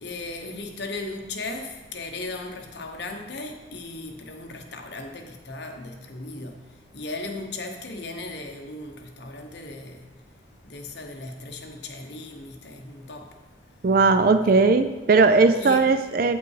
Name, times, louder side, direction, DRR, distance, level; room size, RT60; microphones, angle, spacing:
voice 1, 0.0-6.6 6.9-10.0 10.7-13.3 14.4-14.5 15.6-15.9, left 2 dB, 65° left, 1.0 m, -36 dB
voice 2, 13.8-16.4, right 4 dB, 50° right, 0.4 m, -18 dB
8.3 x 5.8 x 4.8 m
head